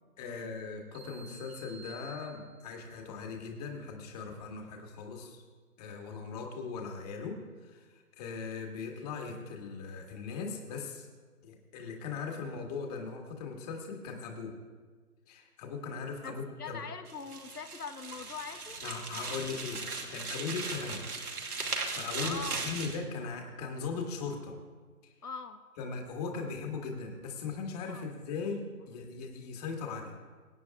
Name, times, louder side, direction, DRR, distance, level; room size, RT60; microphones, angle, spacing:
voice 1, 0.2-5.4 5.8-11.1 11.4-14.5 15.3-16.8 18.8-21.1 21.6-22.4 22.6-24.5 25.0-25.1 25.8-30.1, left 5 dB, 25° left, 1 dB, 1.9 m, -39 dB
sound 1, 0.9-2.9, right 4 dB, 10° right, 1.4 m, -53 dB
voice 2, 16.2-18.8 22.2-22.6 25.2-25.6 27.9-28.1, left 5 dB, 85° left, 7 dB, 1.1 m, -42 dB
sound 2, 17.1-23.0, right 4 dB, 80° right, 2.5 m, -38 dB
24.0 x 9.3 x 2.4 m, 1.4 s
figure-of-eight pair, 145°, 45 cm